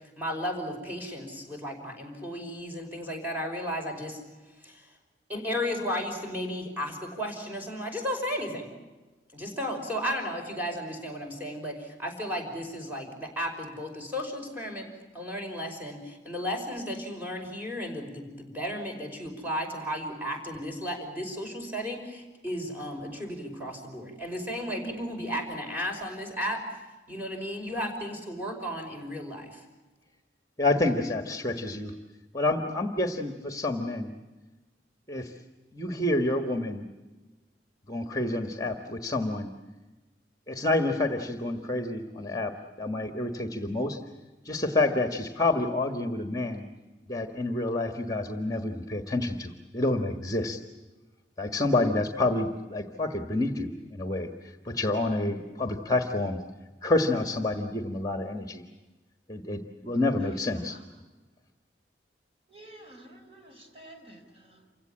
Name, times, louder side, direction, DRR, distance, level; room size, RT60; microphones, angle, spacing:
voice 1, 0.2-4.2 4.6-4.9 5.3-8.7 9.3-14.9 15.1-26.6 27.1-29.6, equal, 10° right, 0 dB, 5.6 m, -34 dB
voice 2, 30.6-31.9 32.3-34.1 35.1-35.3 35.7-36.9 37.9-39.5 40.5-44.0 44.4-46.6 47.1-50.6 51.4-54.3 54.6-56.4 56.8-58.6 59.3-60.8, left 2 dB, 20° left, 7 dB, 1.5 m, -28 dB
voice 3, 60.1-60.9 62.5-64.7, right 1 dB, 35° right, 3 dB, 4.6 m, -50 dB
28.5 x 17.0 x 8.7 m, 1.2 s
head